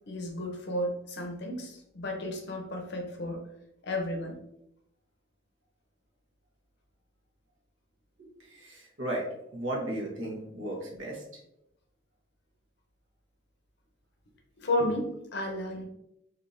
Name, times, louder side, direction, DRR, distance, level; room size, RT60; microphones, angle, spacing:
voice 1, 0.1-3.4 3.8-4.4 14.6-15.9, left 1 dB, 55° left, 2 dB, 0.6 m, -32 dB
voice 2, 8.2-9.3 9.5-11.2, right 1 dB, 65° right, -2 dB, 1.0 m, -35 dB
3.4 x 2.7 x 2.6 m, 0.82 s
head